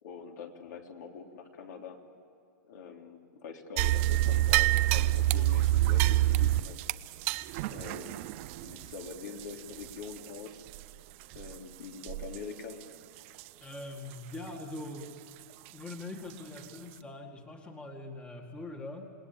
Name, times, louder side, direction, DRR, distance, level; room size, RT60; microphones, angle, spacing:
voice 1, 0.0-2.0 2.7-6.8 7.7-8.3 8.6-10.6 11.3-12.8, left 5 dB, 65° left, 2 dB, 3.5 m, -44 dB
sound 1, 3.8-10.4 10.7-10.8 11.3-11.6 12.0-12.4 12.7-12.8 13.4-13.5 15.9-16.0 16.6-16.7, right 16 dB, 40° right, 0.6 m, -27 dB
voice 2, 13.6-15.1 15.7-19.1, left 2 dB, 10° left, 3 dB, 2.0 m, -42 dB
28.5 x 19.5 x 8.7 m, 2.5 s
hypercardioid pair, 155°, 11 cm